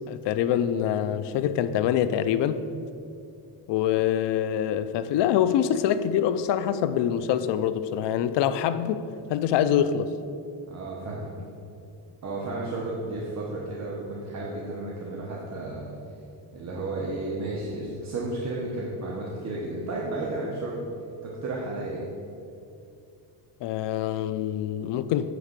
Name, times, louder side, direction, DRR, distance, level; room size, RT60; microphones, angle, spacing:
voice 1, 0.1-2.6 3.7-9.0 9.3-10.1 23.6-25.3, left 10 dB, 65° left, 12 dB, 0.5 m, -25 dB
voice 2, 10.7-11.4 12.2-15.9 16.5-20.8 21.2-22.0, right 2 dB, 35° right, -4 dB, 1.1 m, -33 dB
9.3 x 3.7 x 6.6 m, 2.5 s
cardioid pair, 135°, 46 cm